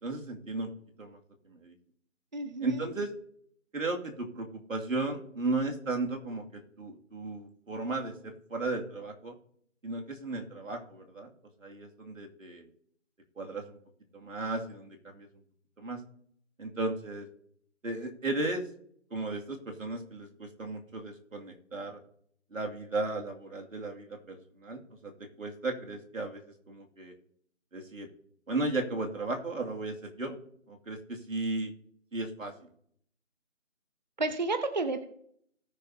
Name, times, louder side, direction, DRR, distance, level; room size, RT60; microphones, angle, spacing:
voice 1, 0.0-0.7 1.0-1.2 1.5-1.7 2.6-3.1 3.7-9.3 9.8-11.3 11.6-12.7 13.4-13.8 14.1-15.3 15.8-16.0 16.6-17.3 17.8-18.6 19.1-22.0 22.5-25.1 25.4-26.4 26.7-27.1 27.7-28.1 28.5-30.4 30.7-31.7 32.1-32.7, right 2 dB, 85° right, 1 dB, 2.5 m, -35 dB
voice 2, 2.3-2.9 34.2-35.0, right 3 dB, 35° right, 8 dB, 0.7 m, -31 dB
18.5 x 6.7 x 2.8 m, 0.66 s
figure-of-eight pair, 170°, 39 cm